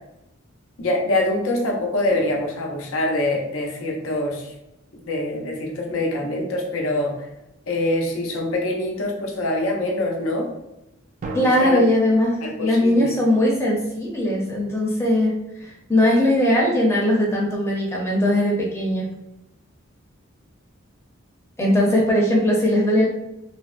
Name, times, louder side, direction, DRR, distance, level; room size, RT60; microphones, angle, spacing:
voice 1, 0.8-4.5 5.1-7.3 7.7-10.5 11.4-11.8 12.4-13.1, left 1 dB, 85° left, 0 dB, 0.6 m, -24 dB
sound 1, 2.1-4.2 11.2-11.9, right 2 dB, 40° right, 0.3 m, -37 dB
voice 2, 11.3-12.3 12.6-15.3 15.6-19.1 21.6-23.0, left 1 dB, 15° left, -3 dB, 0.6 m, -19 dB
3.3 x 2.0 x 2.4 m, 0.89 s
head